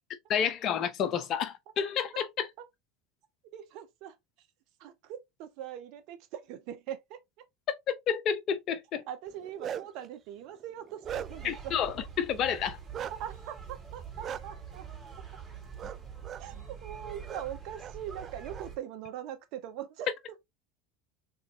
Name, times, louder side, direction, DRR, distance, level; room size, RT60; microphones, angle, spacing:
voice 1, 0.3-2.5 7.9-9.0 11.4-12.8, left 8 dB, 45° left, 0.8 m, -30 dB
voice 2, 3.5-4.2 4.8-7.2 9.1-11.7 13.0-14.9 16.4-20.1, right 10 dB, 60° right, 0.9 m, -41 dB
Bark, 9.3-10.1 10.6-11.6 12.9-13.2 14.2-14.4 15.8-16.0 16.2-16.4 17.3-17.4 17.8-18.6, right 9 dB, 40° right, 0.4 m, -39 dB
sound 1, 11.0-18.8, right 7 dB, 20° right, 2.7 m, -45 dB
3.8 x 3.8 x 2.7 m
hypercardioid pair, 80°, 0 cm